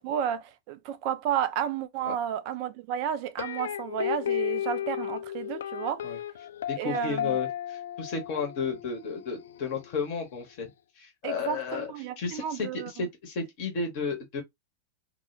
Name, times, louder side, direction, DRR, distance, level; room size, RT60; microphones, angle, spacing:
voice 1, 0.0-6.1 6.8-7.4 11.2-13.0, right 9 dB, 45° right, 0.4 m, -32 dB
sound 1, 3.4-10.5, left 11 dB, 60° left, 0.4 m, -34 dB
voice 2, 6.7-11.9 12.2-14.4, left 5 dB, 45° left, 0.8 m, -33 dB
2.1 x 2.1 x 3.1 m
figure-of-eight pair, 90°, 0 cm